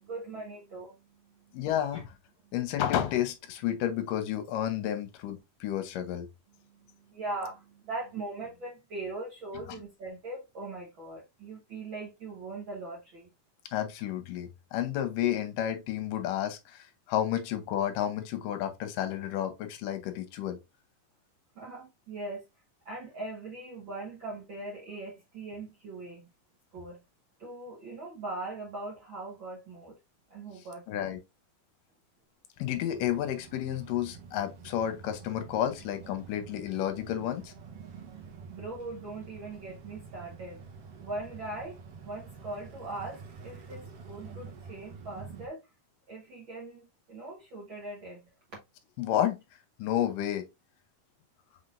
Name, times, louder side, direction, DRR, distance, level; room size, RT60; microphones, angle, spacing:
voice 1, 0.0-1.6 1.9-2.0 2.4-2.5 6.5-13.3 21.5-22.4 22.8-26.2 26.7-27.0 27.4-30.0 30.3-31.2 38.5-40.6 41.0-41.8 42.0-45.7 46.1-48.2, right 2 dB, 60° right, 1.3 m, -40 dB
voice 2, 1.5-2.1 2.5-6.3 9.7-9.8 13.7-20.6 30.9-31.2 32.6-37.5 49.0-49.4 49.8-50.5, left 11 dB, 75° left, 2.3 m, -31 dB
sound 1, 32.8-45.5, right 5 dB, 80° right, 1.4 m, -48 dB
5.6 x 3.6 x 2.5 m
omnidirectional pair, 4.1 m